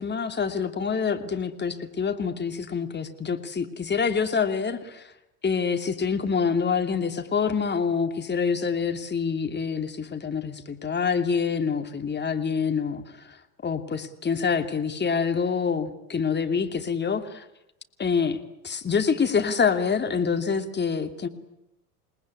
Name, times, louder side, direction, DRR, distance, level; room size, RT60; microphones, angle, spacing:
voice 1, 0.0-5.1 5.4-13.4 13.6-17.4 18.0-18.4 18.6-21.3, left 6 dB, 20° left, 6 dB, 2.8 m, -26 dB
28.0 x 19.5 x 9.7 m, 0.89 s
hypercardioid pair, 80°, 45 cm